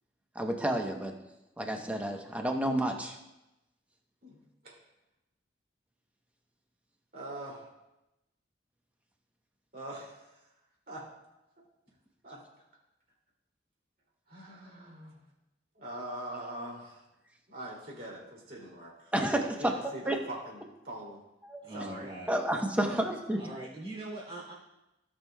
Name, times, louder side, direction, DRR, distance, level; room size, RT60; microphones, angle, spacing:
voice 1, 0.3-1.1 1.6-3.2 19.1-19.7 20.1-20.2 21.4-21.6 22.3-23.4, right 1 dB, 10° right, 2 dB, 0.8 m, -30 dB
voice 2, 4.2-4.8 7.1-7.7 9.7-10.5 10.9-11.1 12.2-12.4 14.3-15.2 15.7-17.0 17.5-19.1 19.4-21.2 21.7-22.1 22.5-23.1, right 1 dB, 50° right, -3 dB, 2.6 m, -43 dB
voice 3, 21.6-22.3 23.4-24.5, right 2 dB, 30° right, -6 dB, 2.7 m, -41 dB
17.0 x 6.2 x 2.2 m, 0.94 s
head